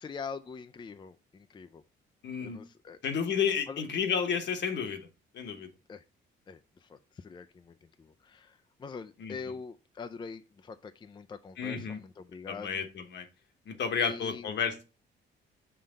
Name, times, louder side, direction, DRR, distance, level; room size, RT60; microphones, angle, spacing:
voice 1, 0.0-1.8 2.4-3.0 3.7-3.8 5.9-6.0 6.5-12.9 14.0-14.5, left 5 dB, 25° left, 0.4 m, -44 dB
voice 2, 2.2-2.6 3.0-5.1 5.3-5.7 9.2-9.3 11.6-12.0 12.5-13.3 13.7-14.8, left 6 dB, 65° left, 1.1 m, -31 dB
5.7 x 3.3 x 5.0 m
cardioid pair, 90°, 20 cm